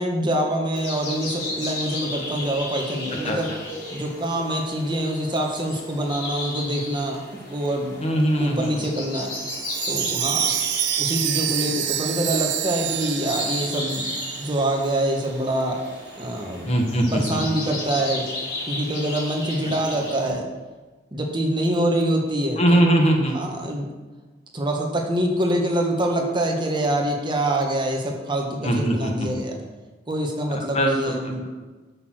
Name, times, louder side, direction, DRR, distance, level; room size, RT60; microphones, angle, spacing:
voice 1, 0.0-3.5 3.9-7.2 7.5-8.0 8.4-9.3 9.9-10.5 11.0-15.8 16.2-16.7 17.1-18.3 18.7-20.4 21.1-22.9 23.3-23.9 24.5-29.6 30.1-31.5, right 1 dB, 25° right, 1 dB, 1.4 m, -25 dB
sound 1, 0.7-20.3, left 2 dB, 70° left, 3.7 m, -34 dB
voice 2, 8.0-8.7 16.7-17.4 22.6-23.3 28.6-29.1 30.7-31.1, right 1 dB, 35° left, 1 dB, 1.5 m, -20 dB
Chime, 9.3-15.2 15.5-15.6 16.2-16.3, right 11 dB, 70° right, 0.7 m, -27 dB
8.5 x 6.6 x 6.2 m, 1.3 s
head